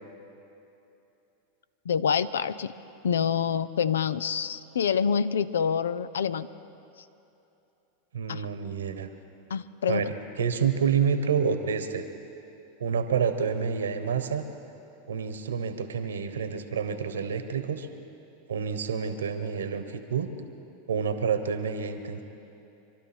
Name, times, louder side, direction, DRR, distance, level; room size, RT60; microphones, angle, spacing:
voice 1, 1.9-2.7 3.0-6.5 8.3-8.5 9.5-10.1, left 7 dB, 80° left, 16 dB, 0.5 m, -26 dB
voice 2, 8.1-9.1 9.9-12.0 12.8-14.5 15.1-17.9 18.5-20.3 20.9-22.2, right 6 dB, 85° right, 9 dB, 1.2 m, -28 dB
26.0 x 12.0 x 4.4 m, 2.9 s
hypercardioid pair, 100°, 0 cm